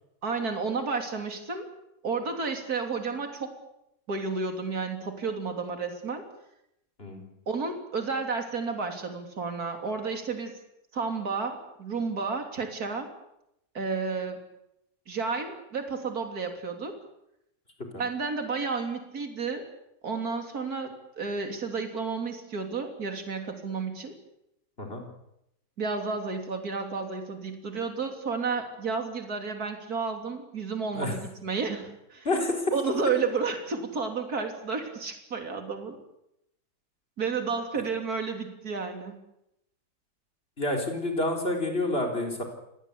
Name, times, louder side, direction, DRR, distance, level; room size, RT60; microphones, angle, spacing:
voice 1, 0.2-1.7 2.0-3.5 4.1-6.2 7.5-10.5 10.9-13.1 13.8-14.4 15.1-17.0 18.0-19.7 20.0-24.1 25.8-32.3 32.7-36.0 37.2-39.2, right 4 dB, 55° right, 5 dB, 3.6 m, -31 dB
voice 2, 32.2-32.7 40.6-42.4, left 2 dB, 30° left, 2 dB, 4.5 m, -28 dB
27.5 x 19.0 x 8.4 m, 0.82 s
omnidirectional pair, 1.9 m